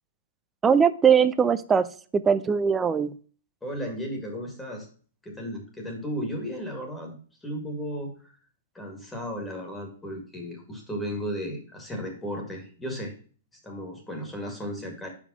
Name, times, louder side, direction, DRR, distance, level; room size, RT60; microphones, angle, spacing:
voice 1, 0.6-1.9 2.1-3.1, right 6 dB, 15° right, 13 dB, 0.5 m, -20 dB
voice 2, 3.6-4.9 5.2-7.2 7.4-8.1 8.7-13.1 13.6-15.1, equal, 10° left, 1 dB, 1.9 m, -34 dB
5.3 x 5.0 x 5.4 m, 0.42 s
hypercardioid pair, 145°, 0 cm